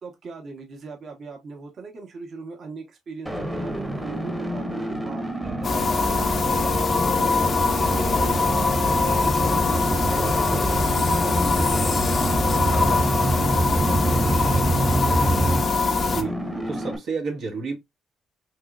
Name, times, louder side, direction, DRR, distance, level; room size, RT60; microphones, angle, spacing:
voice 1, 0.0-7.0 7.9-14.9, right 4 dB, 55° right, 1.1 m, -40 dB
sound 1, 3.3-17.0, right 1 dB, 5° right, 0.9 m, -30 dB
sound 2, 5.4-15.6, right 2 dB, 20° right, 0.5 m, -26 dB
sound 3, 5.6-16.2, left 4 dB, 45° left, 0.6 m, -23 dB
voice 2, 16.0-17.8, right 4 dB, 75° right, 1.2 m, -30 dB
3.9 x 3.0 x 2.3 m
cardioid pair, 90°, 0 cm